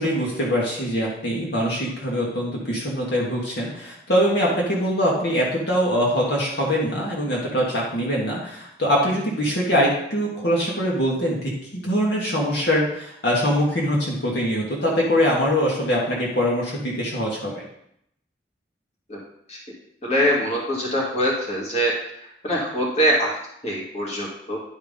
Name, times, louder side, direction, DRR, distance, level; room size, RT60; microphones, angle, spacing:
voice 1, 0.0-17.6, equal, 60° left, -4 dB, 1.9 m, -23 dB
voice 2, 20.0-21.9 22.4-23.3 23.6-24.6, equal, 35° left, -3 dB, 2.3 m, -23 dB
10.5 x 4.5 x 5.3 m, 0.73 s
head